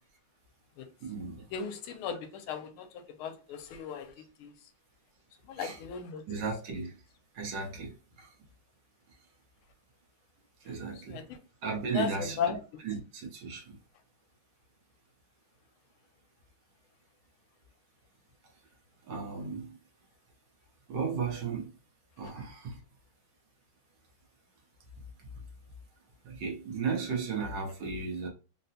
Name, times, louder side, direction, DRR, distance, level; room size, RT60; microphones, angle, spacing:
voice 1, 1.0-1.4 5.6-5.8 6.3-7.0 7.3-8.3 10.6-11.3 11.6-12.6 12.8-13.8 19.0-19.8 20.9-21.7 22.2-22.8 25.2-25.4 26.2-28.3, right 5 dB, 65° right, 1.4 m, -35 dB
voice 2, 1.5-4.1 4.4-4.5 5.4-6.2 11.1-11.4 11.9-12.5, left 7 dB, 85° left, 1.4 m, -36 dB
3.8 x 2.1 x 2.7 m
omnidirectional pair, 2.4 m